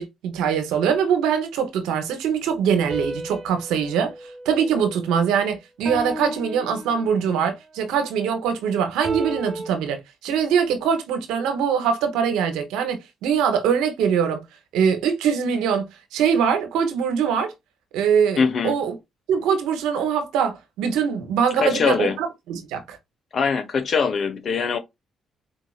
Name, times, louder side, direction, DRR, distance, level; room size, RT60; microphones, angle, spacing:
voice 1, 0.0-4.1 4.4-14.4 14.7-17.5 17.9-18.9 19.3-23.0, right 7 dB, 85° right, 0.8 m, -23 dB
sound 1, 2.9-5.3 5.8-7.4 9.0-9.7, right 1 dB, 45° right, 1.2 m, -34 dB
voice 2, 18.4-18.8 21.6-22.2 23.3-24.8, left 5 dB, 55° left, 0.8 m, -22 dB
4.4 x 2.9 x 2.3 m
supercardioid pair, 55°, 0 cm